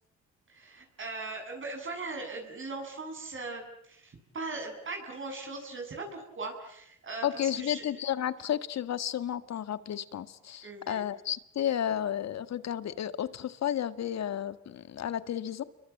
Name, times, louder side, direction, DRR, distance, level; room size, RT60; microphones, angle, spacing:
voice 1, 0.5-7.8 10.6-11.1, right 3 dB, 40° right, 2 dB, 8.0 m, -39 dB
voice 2, 7.2-15.6, left 10 dB, 60° left, 13 dB, 1.8 m, -32 dB
29.5 x 23.5 x 8.5 m, 0.75 s
cardioid pair, 90°, 30 cm